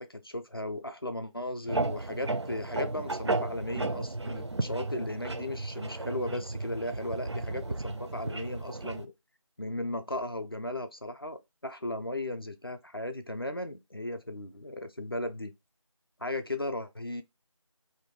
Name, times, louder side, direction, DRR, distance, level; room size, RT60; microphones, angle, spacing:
voice 1, 0.0-9.1 9.6-15.5 16.2-17.2, left 1 dB, 45° left, 0.4 m, -36 dB
sound 1, 1.7-9.0, right 2 dB, 55° right, 0.4 m, -34 dB
2.6 x 2.3 x 3.6 m
figure-of-eight pair, 175°, 17 cm